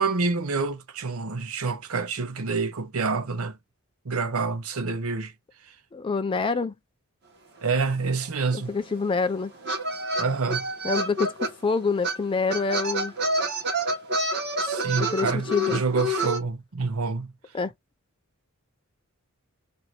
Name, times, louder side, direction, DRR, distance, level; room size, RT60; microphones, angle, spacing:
voice 1, 0.0-3.6 4.0-5.3 7.6-8.7 10.2-10.7 14.6-17.3, right 4 dB, 75° right, 0.7 m, -27 dB
voice 2, 5.9-6.7 8.5-9.5 10.8-13.1 15.0-15.8 17.5-17.7, left 4 dB, 25° left, 0.3 m, -26 dB
sound 1, 7.9-8.0 8.2-11.5 12.0-12.2 12.5-16.4, right 1 dB, 50° right, 1.3 m, -28 dB
2.8 x 2.6 x 3.0 m
head